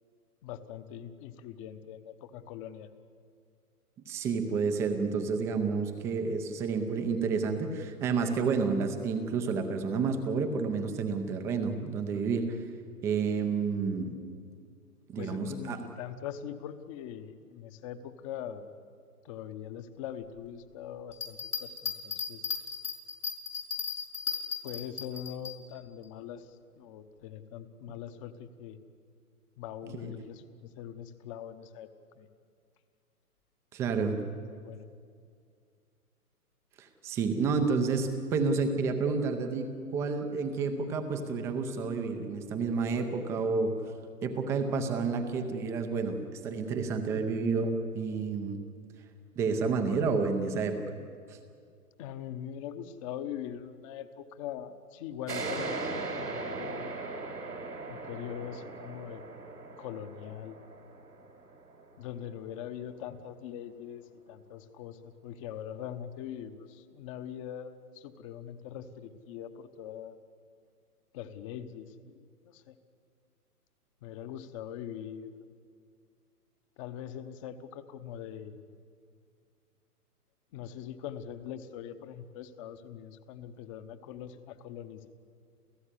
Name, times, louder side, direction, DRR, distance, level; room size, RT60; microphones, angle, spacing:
voice 1, 0.4-2.9 15.1-18.7 19.2-22.5 24.6-28.8 29.6-31.9 32.2-32.3 34.3-34.9 52.0-56.9 57.9-59.2 59.8-60.6 62.0-70.2 71.1-72.8 74.0-75.4 76.8-78.7 80.5-85.1, left 9 dB, 20° left, 11 dB, 1.0 m, -42 dB
voice 2, 4.1-12.6 13.0-14.2 15.1-15.8 29.9-30.1 33.7-34.2 36.8-43.7 44.2-48.6 49.4-50.8 51.3-51.4, right 4 dB, 5° right, 6 dB, 0.6 m, -30 dB
sound 1, 21.1-25.5, left 6 dB, 75° left, 5.6 m, -35 dB
sound 2, 55.3-62.4, right 3 dB, 85° right, 4.9 m, -39 dB
29.0 x 15.5 x 9.9 m, 2.3 s
hypercardioid pair, 145°, 46 cm